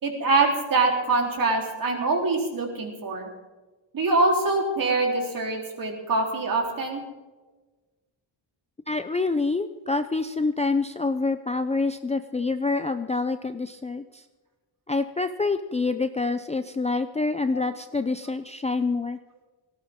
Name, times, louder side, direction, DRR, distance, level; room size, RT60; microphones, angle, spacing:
voice 1, 0.0-3.3 3.9-7.0 17.5-17.6, right 3 dB, 45° right, 1 dB, 3.7 m, -24 dB
voice 2, 8.9-14.0 14.9-19.2, left 3 dB, 15° left, 9 dB, 0.5 m, -26 dB
18.5 x 16.5 x 3.7 m, 1.2 s
wide cardioid pair, 155°, 45 cm